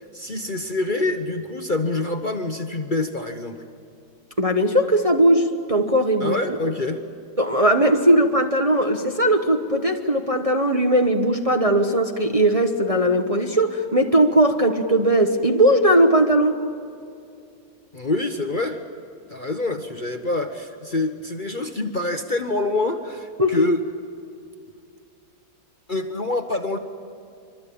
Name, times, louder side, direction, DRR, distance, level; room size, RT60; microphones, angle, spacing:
voice 1, 0.1-3.6 6.2-7.0 17.9-18.8 19.3-23.8 25.9-26.8, left 2 dB, 35° left, 5 dB, 1.1 m, -26 dB
voice 2, 4.4-6.4 7.4-16.6 23.4-23.6, right 1 dB, 25° right, 4 dB, 1.1 m, -19 dB
25.0 x 24.5 x 8.5 m, 2.4 s
omnidirectional pair, 1.8 m